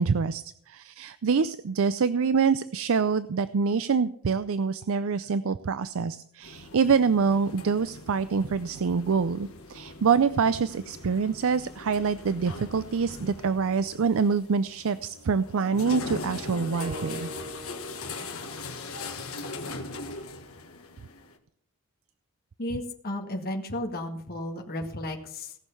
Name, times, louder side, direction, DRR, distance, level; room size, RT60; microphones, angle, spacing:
voice 1, 0.0-17.3, right 5 dB, 65° right, 14 dB, 0.5 m, -26 dB
sound 1, 6.4-21.4, left 3 dB, 65° left, 1.8 m, -40 dB
sound 2, 16.8-19.1, equal, 25° right, 1.3 m, -42 dB
voice 2, 22.6-25.6, left 1 dB, 45° left, 2 dB, 1.9 m, -33 dB
17.5 x 6.4 x 6.9 m, 0.66 s
head